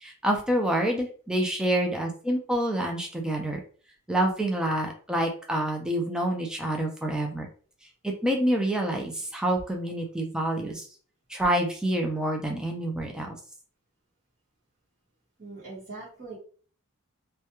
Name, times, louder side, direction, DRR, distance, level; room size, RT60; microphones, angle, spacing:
voice 1, 0.0-3.6 4.1-7.5 8.0-10.9 11.3-13.4, right 1 dB, 5° right, 1 dB, 0.4 m, -27 dB
voice 2, 15.4-16.4, right 3 dB, 40° right, -8 dB, 0.9 m, -41 dB
2.2 x 2.2 x 2.8 m, 0.42 s
head